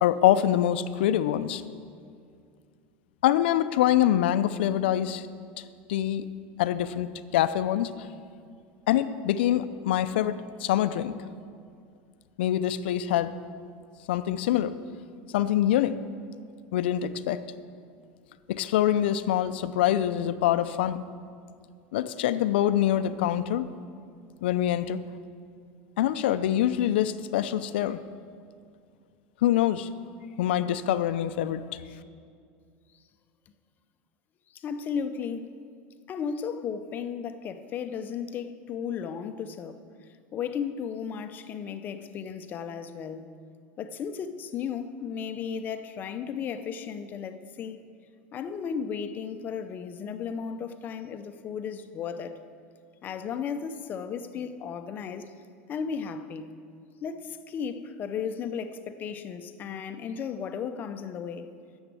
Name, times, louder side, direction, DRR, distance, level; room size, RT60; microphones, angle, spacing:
voice 1, 0.0-1.6 3.2-5.3 5.6-5.7 5.9-6.2 6.6-8.1 8.9-11.1 12.4-13.3 14.1-14.8 15.3-16.0 16.7-17.4 18.5-21.0 21.9-23.7 24.4-25.0 26.0-28.0 29.4-29.9 30.4-31.8, left 12 dB, 90° left, 0.5 m, -25 dB
voice 2, 34.5-35.6 36.1-39.9 40.3-43.3 43.8-47.8 48.3-52.4 53.0-55.3 55.7-56.5 57.0-61.5, left 7 dB, 35° left, 0.7 m, -35 dB
10.0 x 7.1 x 8.3 m
supercardioid pair, 140°, 6 cm